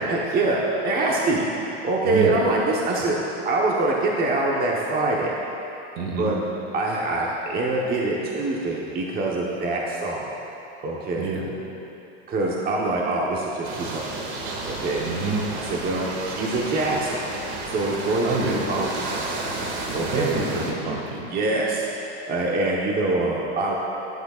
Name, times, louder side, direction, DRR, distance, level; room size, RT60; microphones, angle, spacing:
voice 1, 0.1-1.4 1.8-3.2 3.4-5.3 6.2-6.3 6.7-10.2 10.8-11.3 12.3-14.1 14.8-15.0 15.5-17.2 17.7-19.1 19.9-20.4 21.3-23.7, right 2 dB, 25° right, -3 dB, 1.1 m, -24 dB
voice 2, 2.1-2.4 6.0-6.3 11.2-11.5 15.0-15.5 18.2-18.6 20.1-21.3, right 3 dB, 65° right, 1 dB, 2.1 m, -27 dB
sound 1, 13.6-20.7, right 2 dB, 80° right, 2.2 m, -31 dB
16.5 x 12.0 x 2.5 m, 3.0 s
supercardioid pair, 140°, 33 cm